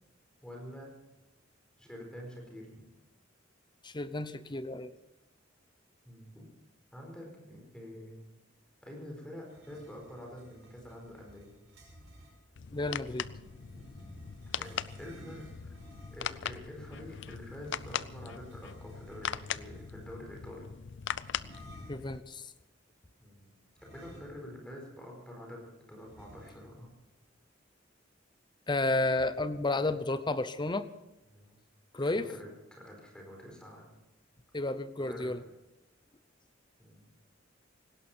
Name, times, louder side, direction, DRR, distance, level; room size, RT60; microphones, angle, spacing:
voice 1, 0.4-0.9 1.8-2.8 6.0-6.4 6.9-8.2 8.8-11.5 14.6-15.7 16.1-20.7 23.2-23.5 23.8-26.9 31.3-31.6 32.0-33.9 35.0-35.3 36.8-37.0, equal, 5° left, 0 dB, 4.7 m, -47 dB
voice 2, 3.8-4.9 12.7-13.3 21.9-22.5 28.7-30.9 31.9-32.3 34.5-35.4, left 2 dB, 25° left, 12 dB, 0.8 m, -31 dB
sound 1, 9.4-12.4 13.2-16.4 17.6-20.2 21.3-22.1 23.8-24.7 25.0-25.1 26.1-26.9, equal, 70° right, 5.2 m, -55 dB
sound 2, 12.6-22.2, left 8 dB, 65° left, 0.5 m, -40 dB
18.5 x 16.5 x 4.5 m, 0.97 s
head